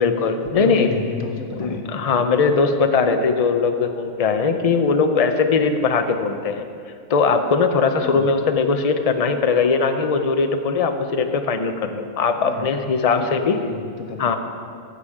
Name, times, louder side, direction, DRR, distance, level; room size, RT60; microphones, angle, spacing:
voice 1, 0.0-0.9 1.6-6.6 7.1-13.6 14.2-14.4, left 5 dB, 50° left, 7 dB, 0.4 m, -20 dB
voice 2, 0.5-1.8 8.0-8.3 12.4-12.7 13.0-14.4, left 4 dB, 75° left, 3 dB, 1.5 m, -31 dB
14.5 x 6.7 x 4.9 m, 2.3 s
omnidirectional pair, 1.5 m